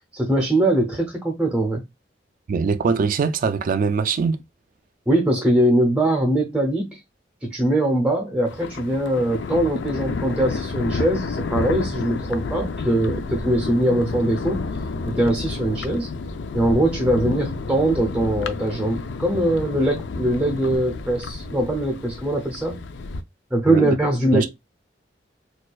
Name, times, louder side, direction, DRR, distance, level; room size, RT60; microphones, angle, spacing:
voice 1, 0.1-1.8 5.1-7.0 7.4-14.6 15.0-16.1 16.5-22.8 23.5-24.5, right 1 dB, 5° right, 0.6 m, -22 dB
voice 2, 2.5-4.4 23.7-23.9 24.3-24.5, right 5 dB, 50° right, 0.3 m, -22 dB
Thunder, 8.4-23.2, left 3 dB, 75° left, 0.4 m, -30 dB
4.2 x 2.4 x 2.3 m
head